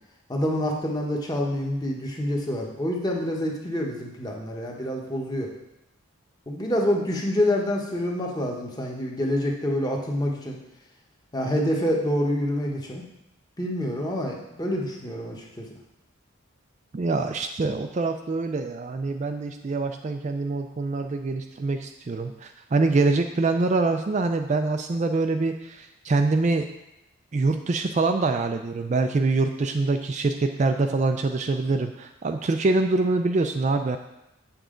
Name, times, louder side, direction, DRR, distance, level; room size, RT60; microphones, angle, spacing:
voice 1, 0.3-5.5 6.5-10.6 11.3-13.0 13.6-15.4, left 1 dB, 20° left, 0 dB, 1.0 m, -27 dB
voice 2, 16.9-26.7 27.3-34.0, right 3 dB, 35° right, 6 dB, 0.3 m, -25 dB
7.7 x 7.1 x 3.8 m, 0.94 s
head